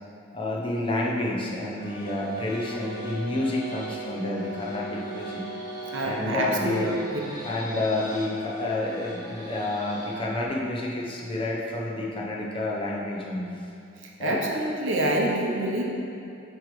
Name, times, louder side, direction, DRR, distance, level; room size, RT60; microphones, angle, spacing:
voice 1, 0.3-5.4 6.0-7.0 7.4-13.6 14.2-14.4, left 2 dB, 25° left, -4 dB, 0.7 m, -29 dB
sound 1, 1.7-10.4, equal, 20° right, 1.1 m, -43 dB
Brass instrument, 2.2-6.5, right 2 dB, 90° left, 0.7 m, -38 dB
voice 2, 5.9-7.0 14.2-15.8, right 1 dB, 65° right, -1 dB, 0.8 m, -26 dB
7.9 x 3.2 x 4.8 m, 2.7 s
head